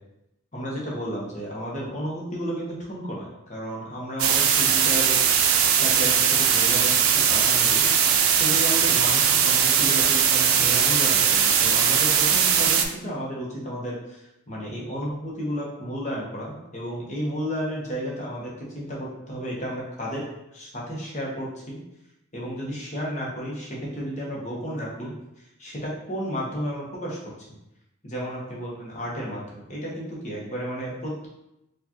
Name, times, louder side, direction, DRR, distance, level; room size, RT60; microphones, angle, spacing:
voice 1, 0.5-5.2 5.8-7.9 8.3-20.2 20.5-21.8 22.3-27.2 28.0-31.3, equal, 35° left, -4 dB, 0.9 m, -32 dB
sound 1, 4.2-12.8, right 8 dB, 80° right, 0.4 m, -20 dB
4.5 x 2.4 x 2.9 m, 0.87 s
head